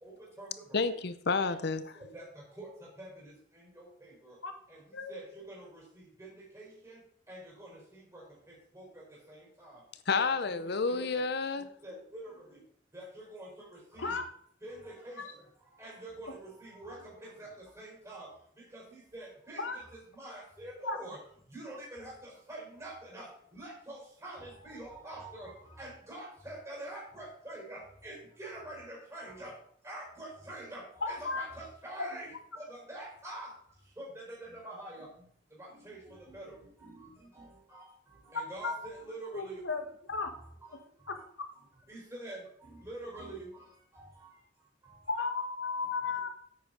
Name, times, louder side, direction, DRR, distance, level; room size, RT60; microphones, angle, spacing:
voice 1, 0.0-0.6 2.1-4.3 4.7-4.8 5.1-7.0 7.3-8.2 8.7-8.8 9.3-9.8 10.1-11.2 11.8-12.4 12.9-14.2 14.6-15.2 15.8-17.5 17.8-18.3 18.7-21.2 21.5-29.5 29.8-32.3 32.6-33.5 34.0-35.1 35.6-37.1 37.3-37.9 38.3-39.6 41.9-43.6 43.9-44.1, right 1 dB, 15° right, 4.5 m, -46 dB
voice 2, 0.7-1.8 10.1-11.7, left 4 dB, 60° left, 0.7 m, -30 dB
voice 3, 31.0-31.4 32.0-32.1 38.6-38.9 39.3-39.8 40.1-40.3 41.1-41.2 45.1-46.3, left 4 dB, 90° left, 1.4 m, -34 dB
9.9 x 8.5 x 3.9 m
head